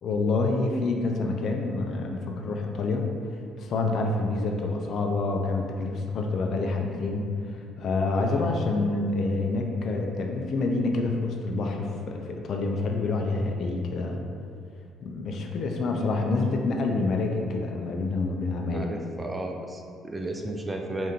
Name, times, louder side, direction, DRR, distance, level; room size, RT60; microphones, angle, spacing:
voice 1, 0.0-3.1 3.6-7.3 7.8-14.2 15.0-18.9, left 3 dB, 55° left, 2 dB, 0.4 m, -27 dB
voice 2, 8.3-8.6 18.7-21.1, right 1 dB, 15° right, 2 dB, 0.3 m, -34 dB
5.0 x 2.6 x 2.8 m, 2.3 s
cardioid pair, 110°, 0 cm